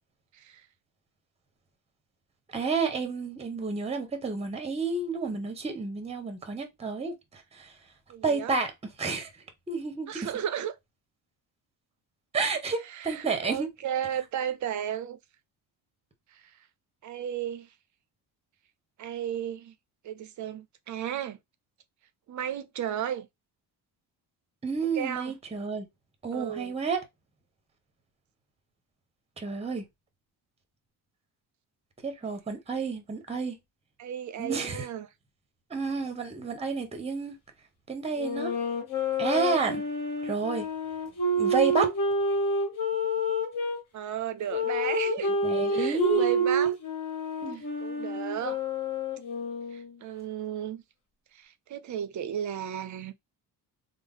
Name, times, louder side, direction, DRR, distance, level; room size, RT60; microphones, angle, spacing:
voice 1, 2.5-7.7 8.2-8.7 9.0-9.3 9.7-10.3 12.3-13.7 24.6-25.9 26.2-27.0 29.4-29.9 32.0-33.6 34.4-34.9 35.7-37.3 37.9-38.6 39.2-39.8 40.2-40.7 41.4-41.9 45.4-46.4 47.4-47.6, right 4 dB, 15° right, 0.8 m, -30 dB
voice 2, 8.1-8.6 10.1-10.7 12.8-15.2 16.3-16.4 17.0-17.7 19.0-19.7 20.0-21.4 22.3-23.3 24.9-25.3 26.3-26.7 34.0-35.1 43.9-45.4 45.7-46.8 47.5-48.6 49.7-50.8 51.3-53.1, right 9 dB, 45° right, 0.5 m, -34 dB
sound 1, 38.2-43.8 44.5-50.0, equal, 50° left, 1.5 m, -29 dB
3.4 x 2.0 x 3.6 m
cardioid pair, 115°, 40 cm